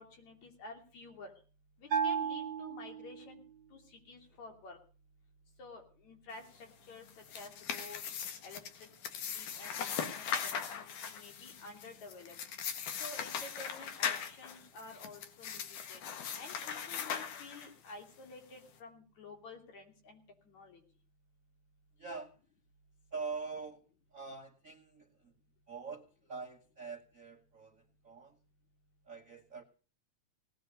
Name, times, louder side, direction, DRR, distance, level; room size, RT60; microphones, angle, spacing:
voice 1, 0.0-1.3 1.8-3.4 3.7-4.8 5.6-7.1 7.3-8.0 8.4-8.9 9.3-12.4 13.0-16.0 16.4-20.8, left 3 dB, 65° left, 4 dB, 4.3 m, -51 dB
Bell, 1.9-3.5, right 7 dB, 45° right, 2.0 m, -34 dB
sound 1, 7.0-17.9, left 7 dB, 85° left, 3.1 m, -39 dB
voice 2, 22.0-22.4 23.1-23.8 24.1-25.3 25.7-28.4 29.1-29.6, right 4 dB, 90° right, 4 dB, 0.7 m, -44 dB
18.0 x 10.0 x 6.6 m, 0.39 s
omnidirectional pair, 3.5 m